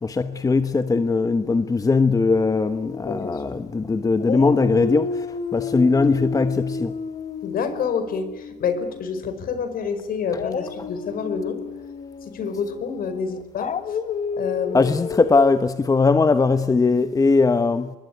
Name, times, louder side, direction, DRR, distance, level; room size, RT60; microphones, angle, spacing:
voice 1, 0.0-5.2 5.5-6.9 14.7-17.9, left 4 dB, 20° left, 1.1 m, -20 dB
Dog, 2.3-3.8 4.2-9.3 10.3-15.5, left 5 dB, 45° left, 1.7 m, -32 dB
voice 2, 3.0-3.6 7.4-11.6 12.3-13.7 14.4-14.9, left 6 dB, 60° left, 4.8 m, -28 dB
25.5 x 21.0 x 9.6 m
cardioid pair, 110°, 17 cm